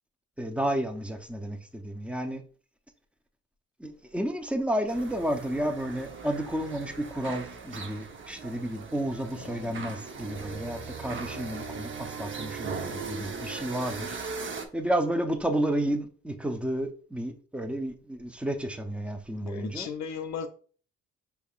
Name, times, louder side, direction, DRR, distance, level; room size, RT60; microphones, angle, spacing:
voice 1, 0.4-2.4 3.8-14.2 14.7-19.9, right 1 dB, 5° right, 0.6 m, -31 dB
sound 1, 4.9-14.7, right 5 dB, 40° right, 0.7 m, -39 dB
voice 2, 9.4-10.0 19.4-20.5, left 7 dB, 65° left, 0.5 m, -37 dB
5.5 x 3.5 x 2.3 m
cardioid pair, 90°, 30 cm